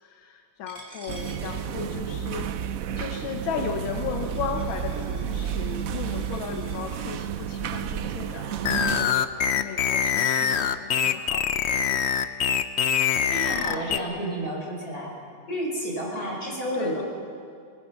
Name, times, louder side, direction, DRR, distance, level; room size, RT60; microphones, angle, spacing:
voice 1, 0.0-9.3 9.5-12.2 16.7-17.0, left 7 dB, 90° left, 5 dB, 1.8 m, -35 dB
Coin (dropping), 0.7-6.8, right 2 dB, 25° right, 3.2 m, -50 dB
sound 1, 1.1-9.0, right 9 dB, 65° right, 0.8 m, -31 dB
sound 2, 8.6-14.0, left 8 dB, 65° left, 0.6 m, -24 dB
voice 2, 13.3-15.1 15.5-17.0, equal, 50° left, -2 dB, 5.6 m, -30 dB
27.0 x 20.0 x 5.7 m, 2.3 s
omnidirectional pair, 2.1 m